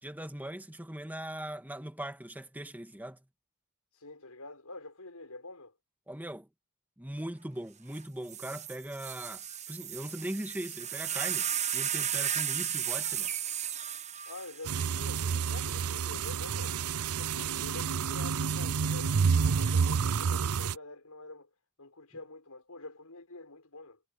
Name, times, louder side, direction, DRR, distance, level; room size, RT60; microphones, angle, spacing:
voice 1, 0.0-3.2 6.1-6.5 7.0-9.4 9.7-13.3, right 1 dB, 10° right, 1.9 m, -40 dB
voice 2, 4.0-5.7 14.3-16.8 17.2-21.5 21.8-24.0, left 2 dB, 85° left, 5.5 m, -47 dB
sound 1, 7.9-8.0 8.3-15.7 16.6-17.0, right 9 dB, 30° right, 1.0 m, -35 dB
sound 2, 14.7-20.7, right 6 dB, 80° right, 0.6 m, -29 dB
head